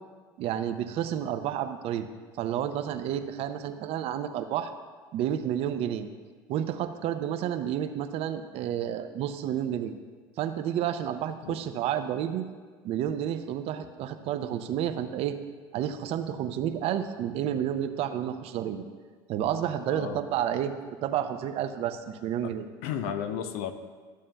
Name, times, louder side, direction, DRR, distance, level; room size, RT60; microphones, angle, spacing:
voice 1, 0.4-2.1 2.4-4.7 5.1-6.1 6.5-10.0 10.4-12.4 12.8-15.4 15.7-18.8 19.3-20.7 21.0-22.7, right 10 dB, 60° right, 9 dB, 0.6 m, -30 dB
voice 2, 19.9-20.2 22.4-22.5 22.8-23.7, left 8 dB, 75° left, 9 dB, 0.6 m, -33 dB
13.0 x 7.3 x 2.2 m, 1.5 s
supercardioid pair, 90°, 11 cm